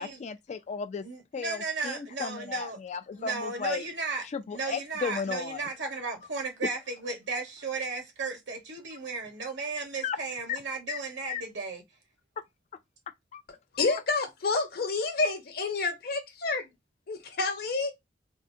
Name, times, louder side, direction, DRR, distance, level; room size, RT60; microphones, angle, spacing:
voice 1, 0.0-1.0 1.3-3.9 4.2-5.7 6.7-6.8 10.0-10.2 10.5-10.6 10.9-11.0 11.3-11.4 13.3-13.4 13.8-14.0, left 6 dB, 40° left, 0.3 m, -35 dB
voice 2, 1.0-2.8 3.1-11.8, right 4 dB, 75° right, 1.3 m, -35 dB
voice 3, 13.7-16.7 17.1-17.9, left 3 dB, 55° left, 0.9 m, -29 dB
3.6 x 2.1 x 2.6 m
head